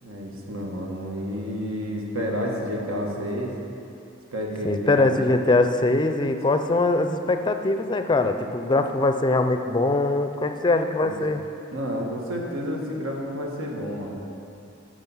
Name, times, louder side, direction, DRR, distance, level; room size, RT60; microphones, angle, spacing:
voice 1, 0.0-3.5 4.3-5.2 11.0-11.1 11.7-14.3, equal, 80° right, -1 dB, 1.4 m, -30 dB
voice 2, 4.6-11.4, left 2 dB, 20° left, 7 dB, 0.4 m, -22 dB
10.5 x 6.3 x 5.6 m, 2.7 s
head